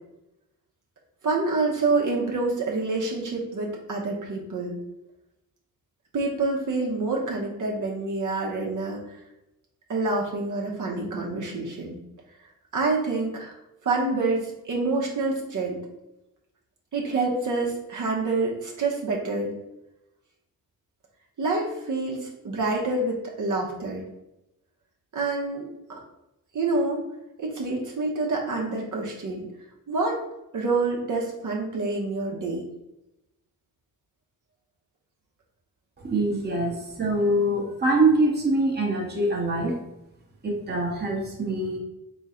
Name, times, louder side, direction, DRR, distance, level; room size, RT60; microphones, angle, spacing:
voice 1, 1.2-4.8 6.1-9.2 9.9-12.0 12.7-13.5 13.8-15.8 16.9-19.5 21.4-24.1 25.1-26.0 26.5-27.0 27.4-29.5 29.9-30.2 30.5-32.6, right 3 dB, 60° right, -2 dB, 1.0 m, -27 dB
voice 2, 36.0-39.8 40.4-41.8, right 2 dB, 30° right, -2 dB, 1.0 m, -24 dB
3.7 x 3.0 x 4.3 m, 0.90 s
cardioid pair, 105°, 35 cm